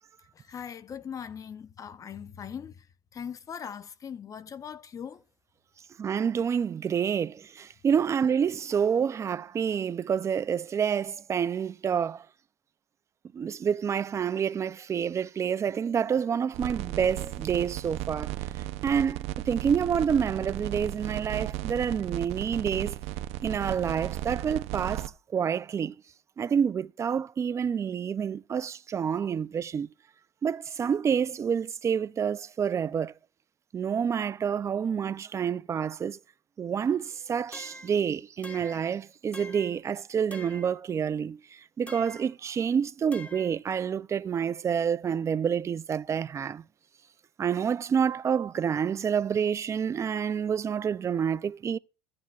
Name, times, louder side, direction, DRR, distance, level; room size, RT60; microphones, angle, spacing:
voice 1, 0.5-2.7 3.1-5.2, left 7 dB, 30° left, 0.7 m, -40 dB
voice 2, 6.0-12.3 13.3-18.4 18.8-23.0 23.4-25.9 26.4-29.9 30.4-33.1 33.7-36.2 36.6-46.6 47.4-51.8, right 7 dB, 25° right, 0.4 m, -28 dB
sound 1, 16.5-25.1, right 14 dB, 65° right, 0.6 m, -35 dB
sound 2, 37.5-38.0 38.4-38.9 39.3-39.8 40.3-40.8 41.9-42.3 43.1-43.6, left 2 dB, 10° left, 1.1 m, -45 dB
15.0 x 9.5 x 2.4 m
cardioid pair, 120°, 11 cm